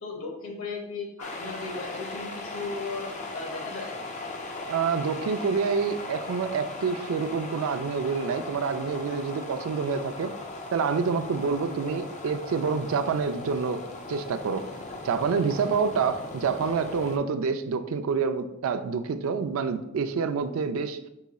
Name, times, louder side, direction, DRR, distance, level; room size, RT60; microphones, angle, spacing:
voice 1, 0.0-3.0 3.3-3.9, left 4 dB, 75° left, 1 dB, 1.0 m, -36 dB
sound 1, 1.2-17.2, left 2 dB, 35° left, 0.4 m, -38 dB
voice 2, 4.7-10.3 10.7-13.8 14.1-14.6 15.0-21.0, right 5 dB, 80° right, 9 dB, 0.4 m, -27 dB
4.7 x 4.0 x 2.3 m, 0.88 s
head